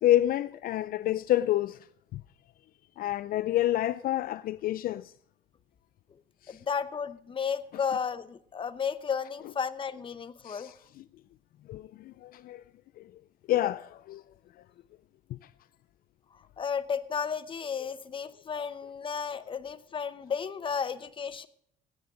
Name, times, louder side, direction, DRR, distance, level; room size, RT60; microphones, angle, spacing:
voice 1, 0.0-1.8 2.1-2.2 3.0-5.1 6.4-6.6 10.4-11.0 11.7-12.6 13.0-13.1 13.5-14.2, left 13 dB, 60° left, 0.4 m, -28 dB
voice 2, 6.5-10.7 16.6-21.5, left 6 dB, 30° left, 0.9 m, -33 dB
16.0 x 9.5 x 5.0 m
cardioid pair, 110°, 17 cm